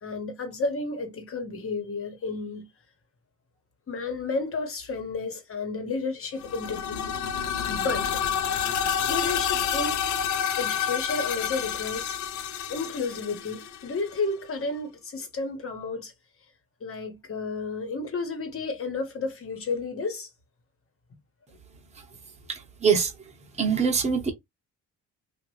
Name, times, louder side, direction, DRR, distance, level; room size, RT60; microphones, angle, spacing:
voice 1, 0.0-2.7 3.9-7.1 7.7-8.1 9.1-10.0 10.6-12.1 12.7-16.1 16.8-20.3, left 3 dB, 45° left, 1.3 m, -32 dB
sound 1, 6.4-14.2, left 8 dB, 85° left, 0.6 m, -29 dB
voice 2, 22.5-23.3 23.6-24.3, right 6 dB, 20° right, 1.0 m, -24 dB
3.0 x 2.5 x 3.1 m
cardioid pair, 90°, 30 cm